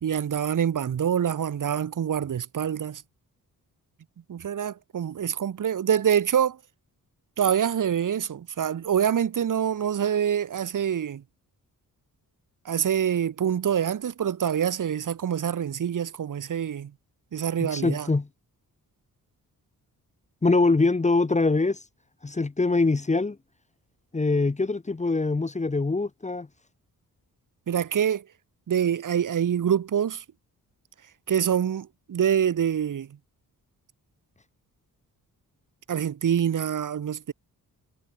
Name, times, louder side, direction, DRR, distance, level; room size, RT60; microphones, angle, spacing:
voice 1, 0.0-3.0 4.3-6.6 7.4-11.2 12.7-16.9 17.3-18.1 27.7-28.2 28.7-30.2 31.3-33.1 35.9-37.3, right 9 dB, 60° right, 2.1 m, -25 dB
voice 2, 17.6-18.3 20.4-21.8 22.2-23.4 24.1-26.5, left 3 dB, 20° left, 1.7 m, -23 dB
wide cardioid pair, 145°, 36 cm